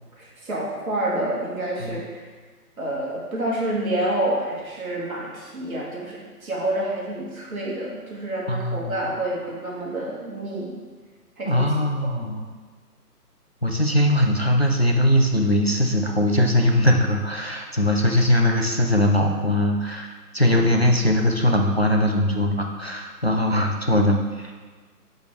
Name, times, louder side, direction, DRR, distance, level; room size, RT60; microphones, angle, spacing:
voice 1, 0.2-2.2 2.8-10.8 11.4-11.7 12.4-12.5, right 1 dB, 60° right, -5 dB, 2.0 m, -28 dB
voice 2, 8.5-9.0 11.5-12.5 13.6-24.5, left 1 dB, 40° left, 1 dB, 0.4 m, -21 dB
8.1 x 4.4 x 3.4 m, 1.4 s
hypercardioid pair, 175°, 48 cm